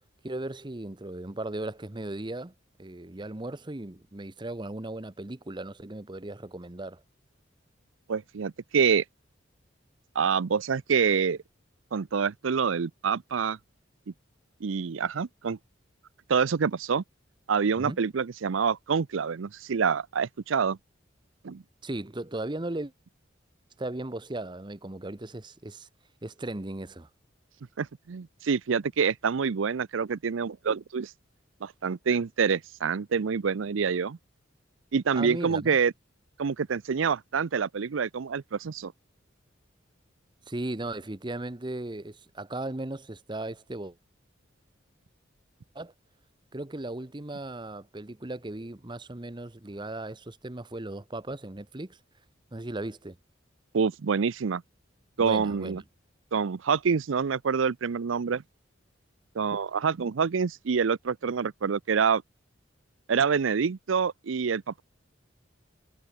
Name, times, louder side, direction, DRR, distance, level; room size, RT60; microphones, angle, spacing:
voice 1, 0.2-2.5 2.8-7.0 17.8-18.0 21.8-22.9 23.8-25.9 26.2-27.1 35.1-35.8 40.5-44.0 45.7-45.9 46.5-52.0 52.5-53.2 55.2-55.8, right 2 dB, 25° right, 0.9 m, -37 dB
voice 2, 8.1-9.0 10.1-11.4 11.9-13.6 14.6-15.6 16.3-17.0 17.5-20.8 21.4-21.6 27.8-31.1 31.6-34.2 34.9-35.9 36.4-38.9 53.7-54.6 55.2-55.8 56.3-58.4 59.4-62.2 63.1-64.8, right 6 dB, 85° right, 0.5 m, -26 dB
head